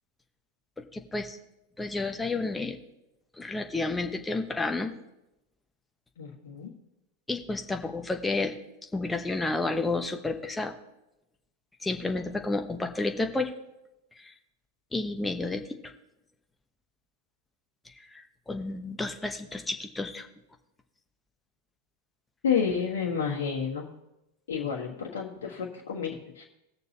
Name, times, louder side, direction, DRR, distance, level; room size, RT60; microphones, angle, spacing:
voice 1, 0.9-1.4 1.8-2.8 3.4-4.9 7.3-8.5 8.9-10.7 11.8-13.5 14.2-14.3 14.9-15.8 18.1-20.3, left 3 dB, 10° left, 5 dB, 1.0 m, -31 dB
voice 2, 6.2-6.7 22.4-23.9 24.5-26.4, left 6 dB, 65° left, -2 dB, 1.4 m, -30 dB
18.5 x 6.7 x 2.9 m, 0.91 s
figure-of-eight pair, 90°, 0 cm